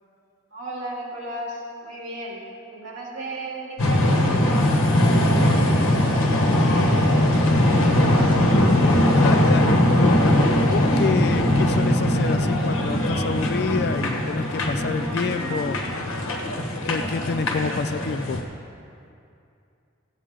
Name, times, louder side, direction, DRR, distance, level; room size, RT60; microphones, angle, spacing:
voice 1, 0.5-2.4 2.7-8.3, right 1 dB, 70° right, -4 dB, 2.8 m, -35 dB
sound 1, 3.8-18.4, left 1 dB, 90° left, 1.3 m, -20 dB
voice 2, 9.2-15.8 16.8-18.4, left 4 dB, 50° left, 11 dB, 0.3 m, -28 dB
15.0 x 8.3 x 3.7 m, 2.6 s
head